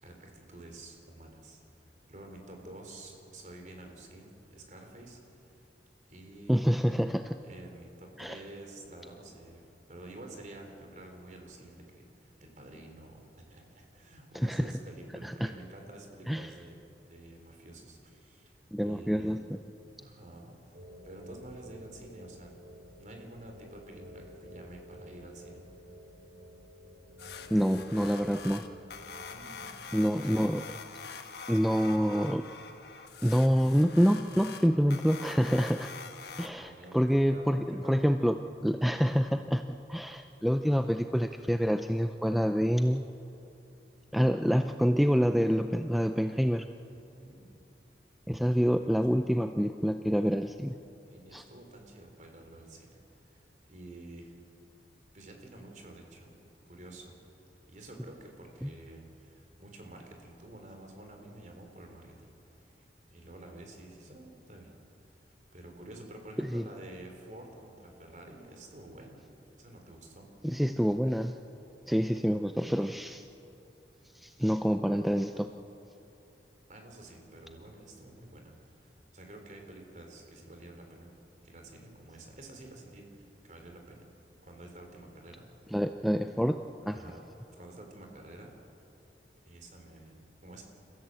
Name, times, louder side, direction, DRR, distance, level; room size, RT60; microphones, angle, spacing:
voice 1, 0.0-5.6 6.1-6.6 7.4-16.8 17.1-18.5 18.8-19.3 20.0-20.8 21.0-22.6 23.0-25.6 29.3-29.9 36.5-38.1 47.2-47.6 48.6-48.9 51.1-52.9 53.1-54.4 55.1-56.4 56.7-57.1 57.7-62.8 63.1-64.7 65.2-65.3 65.5-69.3 69.6-70.3 76.7-81.1 81.4-84.1 84.4-85.6 86.9-87.2 87.6-88.5 89.5-90.6, right 1 dB, 45° right, 3 dB, 3.8 m, -49 dB
voice 2, 6.5-7.4 8.2-8.4 14.3-14.7 15.2-15.5 16.3-16.5 18.7-19.4 27.5-28.7 29.9-30.7 31.5-32.4 33.2-35.9 36.4-38.4 38.6-39.6 39.9-43.0 44.1-46.7 48.3-50.8 51.3-51.4 58.6-58.7 66.4-66.6 70.4-71.3 71.9-73.2 74.1-75.5 85.7-87.0, equal, ahead, 7 dB, 0.4 m, -27 dB
sound 1, 20.7-29.7, equal, 65° right, 5.9 m, -51 dB
sound 2, 27.2-36.5, left 5 dB, 65° left, 1.3 m, -45 dB
29.0 x 15.5 x 7.7 m, 2.8 s
head